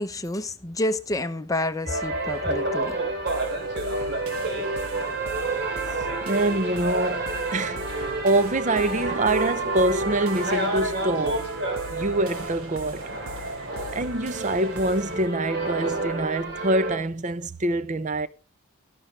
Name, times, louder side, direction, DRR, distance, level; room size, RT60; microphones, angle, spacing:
voice 1, 0.0-3.0, left 1 dB, 15° left, 0.7 m, -29 dB
sound 1, 1.9-17.0, right 2 dB, 50° right, 3.0 m, -29 dB
sound 2, 3.3-15.3, equal, 75° right, 1.6 m, -41 dB
voice 2, 6.3-7.8 8.2-11.5 11.9-13.0 13.9-18.3, right 2 dB, 35° right, 0.6 m, -25 dB
12.5 x 11.0 x 3.2 m
head